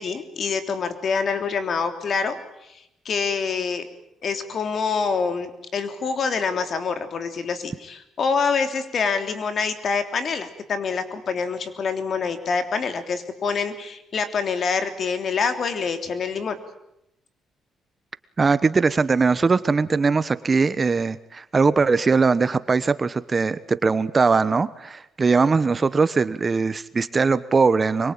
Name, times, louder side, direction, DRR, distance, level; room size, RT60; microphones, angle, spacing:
voice 1, 0.0-2.4 2.7-3.9 4.2-16.6, left 5 dB, 55° left, 8 dB, 3.4 m, -26 dB
voice 2, 18.4-28.1, right 4 dB, 30° right, 15 dB, 1.1 m, -20 dB
25.5 x 23.0 x 9.0 m, 0.82 s
cardioid pair, 90°, 0 cm